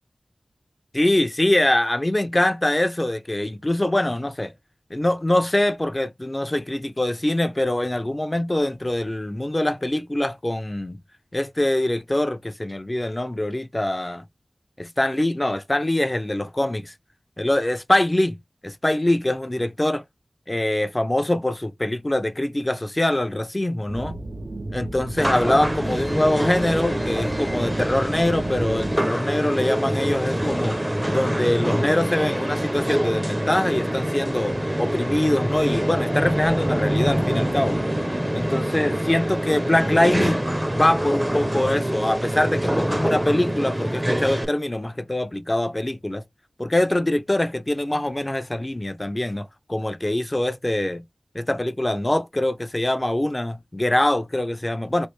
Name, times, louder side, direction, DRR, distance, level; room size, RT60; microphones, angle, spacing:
voice 1, 0.9-4.5 4.9-11.0 11.3-14.2 14.8-16.9 17.4-18.4 18.6-20.0 20.5-24.2 24.7-30.8 31.1-37.8 38.3-40.5 40.7-46.2 46.6-51.0 51.3-55.1, left 1 dB, 25° left, 0.5 m, -23 dB
sound 1, 23.9-29.0, right 2 dB, 65° right, 0.4 m, -34 dB
sound 2, 25.2-44.4, equal, 20° right, 0.6 m, -25 dB
3.2 x 2.5 x 3.1 m
wide cardioid pair, 45°, 0 cm